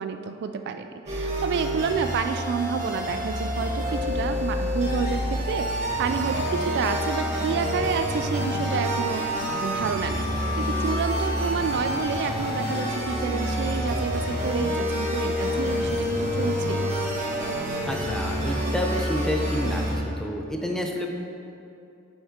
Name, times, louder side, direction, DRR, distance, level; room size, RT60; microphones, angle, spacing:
voice 1, 0.0-10.3 10.6-16.9, right 5 dB, 55° right, 7 dB, 0.3 m, -29 dB
sound 1, 1.1-19.9, equal, 35° right, 1.7 m, -27 dB
voice 2, 17.9-21.1, left 1 dB, 5° left, 2 dB, 0.5 m, -29 dB
8.1 x 5.3 x 3.6 m, 2.6 s
head